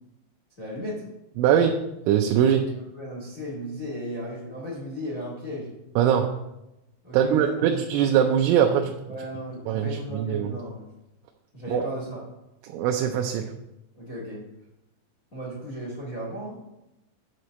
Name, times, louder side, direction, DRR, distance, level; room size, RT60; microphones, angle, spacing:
voice 1, 0.6-1.0 2.6-5.7 7.0-7.7 9.1-10.8 11.5-12.2 13.9-14.4 15.3-16.6, equal, 80° left, -5 dB, 0.7 m, -35 dB
voice 2, 1.4-2.6 6.0-6.4 7.1-9.0 9.7-10.5 11.7-11.9 12.7-13.5, right 9 dB, 85° right, 3 dB, 3.1 m, -22 dB
8.1 x 4.4 x 6.4 m, 0.92 s
omnidirectional pair, 5.6 m